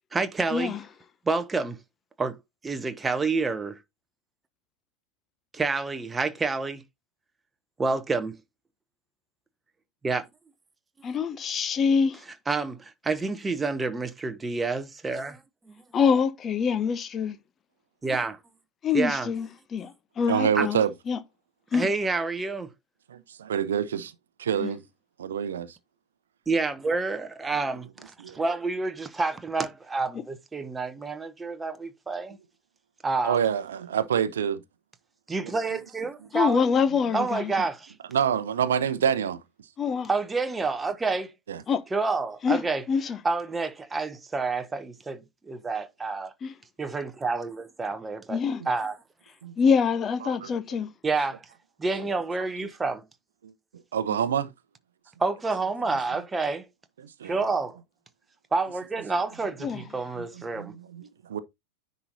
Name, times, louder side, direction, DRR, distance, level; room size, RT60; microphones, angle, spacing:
voice 1, 0.1-0.7 1.3-1.8 2.2-2.4 2.6-3.8 5.6-6.8 7.8-8.4 10.0-10.3 12.5-15.4 15.7-15.8 18.0-18.4 18.9-19.3 20.6-20.7 21.7-22.7 26.5-27.8 28.3-32.4 33.0-33.5 35.3-36.7 37.1-37.9 40.1-41.3 41.9-42.8 43.2-46.3 46.8-48.4 48.7-49.0 51.0-51.3 51.8-53.0 55.2-56.6 57.2-57.8 58.5-60.8, right 3 dB, 10° right, 0.9 m, -28 dB
voice 2, 11.0-12.2 15.9-17.4 18.8-21.2 21.7-21.9 24.6-24.7 36.3-37.7 39.8-40.1 41.7-41.8 42.4-42.6 42.9-43.2 46.4-46.5 48.3-48.6 49.6-50.9 59.6-59.8, left 6 dB, 25° left, 1.0 m, -25 dB
voice 3, 20.3-20.9 23.1-24.1 24.4-24.8 25.2-25.7 28.2-28.4 33.2-34.6 38.1-39.4 41.5-41.6 49.4-49.5 53.9-54.5 57.0-57.4 60.6-61.4, right 8 dB, 65° right, 0.8 m, -26 dB
9.9 x 4.2 x 4.0 m
figure-of-eight pair, 90°, 0 cm